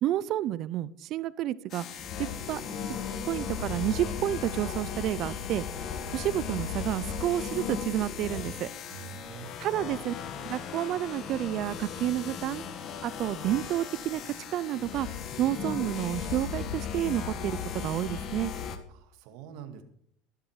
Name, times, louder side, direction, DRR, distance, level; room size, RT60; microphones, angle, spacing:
voice 1, 0.0-2.6 3.3-8.7 9.6-12.6 13.0-15.1 15.4-18.5, right 12 dB, 50° right, 19 dB, 0.6 m, -30 dB
sound 1, 1.7-18.8, left 7 dB, 45° left, 1.6 m, -36 dB
voice 2, 8.9-9.5 18.9-19.8, right 9 dB, 70° right, 7 dB, 2.1 m, -45 dB
13.0 x 11.5 x 4.9 m, 0.66 s
supercardioid pair, 115°, 0 cm